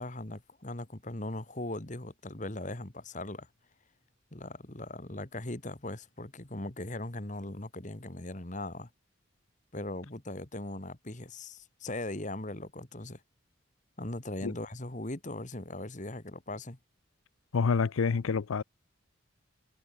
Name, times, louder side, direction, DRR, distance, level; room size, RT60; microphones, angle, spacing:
voice 1, 0.0-3.5 4.3-8.9 9.7-13.2 14.0-16.8, left 1 dB, 35° left, 1.9 m, -39 dB
voice 2, 17.5-18.6, left 5 dB, 90° left, 0.5 m, -27 dB
head